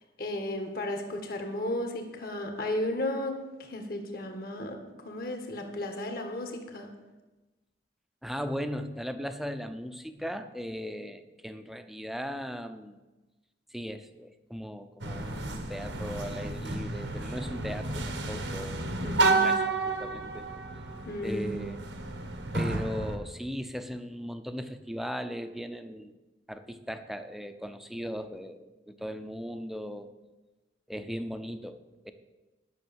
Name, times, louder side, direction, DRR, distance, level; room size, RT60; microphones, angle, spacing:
voice 1, 0.2-6.9 19.0-19.5 21.0-21.6, left 1 dB, 55° left, 4 dB, 1.8 m, -34 dB
voice 2, 8.2-13.0 13.7-18.9 19.2-20.5 21.2-21.8 22.5-26.1 26.5-30.1 30.9-32.1, equal, ahead, 9 dB, 0.6 m, -38 dB
sound 1, 15.0-23.2, right 3 dB, 90° right, 1.5 m, -31 dB
11.0 x 6.6 x 7.2 m, 1.1 s
head